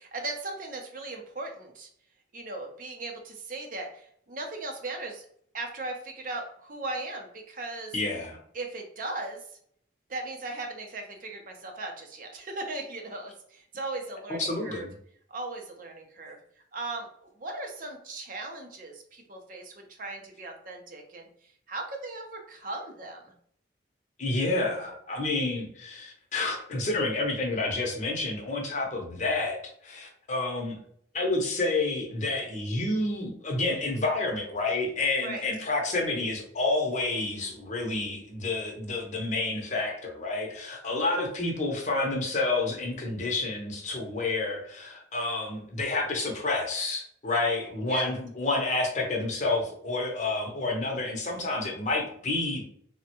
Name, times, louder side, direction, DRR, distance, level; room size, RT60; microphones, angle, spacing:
voice 1, 0.0-1.9 2.3-5.3 5.5-7.9 8.5-9.5 10.1-14.9 15.3-16.4 16.7-21.3 21.7-23.3 35.2-35.4 47.9-48.1, right 2 dB, 45° right, 3 dB, 0.5 m, -38 dB
voice 2, 7.9-8.4 14.4-14.9 24.2-30.8 31.1-52.6, left 2 dB, 40° left, 1 dB, 0.6 m, -29 dB
3.3 x 2.1 x 2.8 m, 0.64 s
head